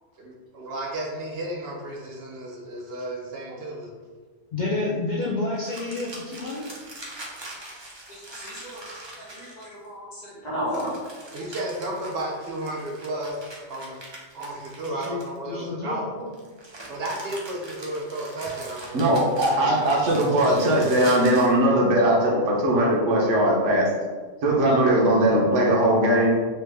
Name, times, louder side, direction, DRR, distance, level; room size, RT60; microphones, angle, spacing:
voice 1, 0.2-3.9 11.3-14.0 14.3-16.3 16.9-19.9, right 1 dB, 65° right, -2 dB, 0.7 m, -33 dB
voice 2, 4.5-6.7 14.9-16.1, left 2 dB, 60° left, -6 dB, 0.5 m, -29 dB
sound 1, 5.6-9.9 10.7-15.6 16.3-21.6, right 1 dB, 40° right, 0.4 m, -42 dB
voice 3, 8.1-8.8 9.2-10.9 11.4-11.5, equal, 40° left, -7 dB, 1.0 m, -34 dB
voice 4, 18.9-23.9 24.4-26.3, right 1 dB, 90° right, -3 dB, 1.1 m, -20 dB
3.2 x 2.1 x 3.3 m, 1.4 s
omnidirectional pair, 1.2 m